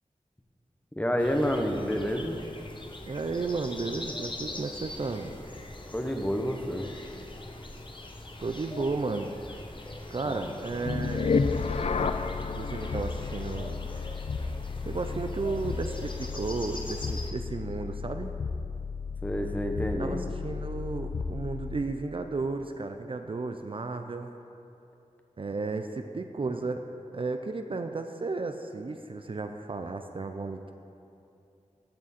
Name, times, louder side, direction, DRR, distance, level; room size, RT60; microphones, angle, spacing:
voice 1, 1.0-2.4 5.9-6.9 10.2-10.5 19.2-20.2, equal, 10° left, 4 dB, 0.9 m, -29 dB
sound 1, 1.2-17.3, left 2 dB, 40° left, 0.9 m, -42 dB
voice 2, 3.1-5.4 8.4-9.5 10.1-11.3 12.5-13.9 14.8-18.3 20.0-24.3 25.4-26.8 27.1-30.7, right 3 dB, 45° right, 6 dB, 0.4 m, -33 dB
sound 2, 10.8-22.0, left 5 dB, 55° left, 0.4 m, -32 dB
14.0 x 6.2 x 4.2 m, 2.7 s
wide cardioid pair, 60°, 13 cm